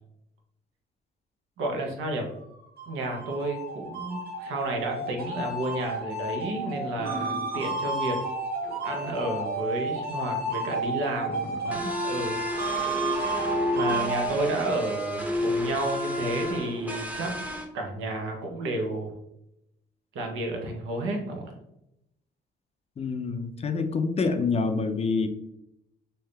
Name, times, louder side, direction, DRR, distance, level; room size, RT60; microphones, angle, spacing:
voice 1, 1.6-2.3 2.9-8.2 8.8-12.4 13.7-17.3 17.7-19.1 20.1-21.5, right 2 dB, 85° right, 2 dB, 0.8 m, -31 dB
sound 1, 2.5-14.3, right 2 dB, 50° right, 1.3 m, -32 dB
sound 2, 6.6-6.7 6.9-8.0 8.6-9.3 9.6-9.7 10.2-10.3 10.5-12.4 12.9-13.0, left 1 dB, 85° left, 0.7 m, -42 dB
sound 3, 11.7-17.6, equal, 10° right, 0.7 m, -30 dB
voice 2, 23.0-25.3, left 4 dB, 30° left, 8 dB, 0.4 m, -27 dB
3.4 x 2.7 x 3.2 m, 0.82 s
cardioid pair, 90°, 20 cm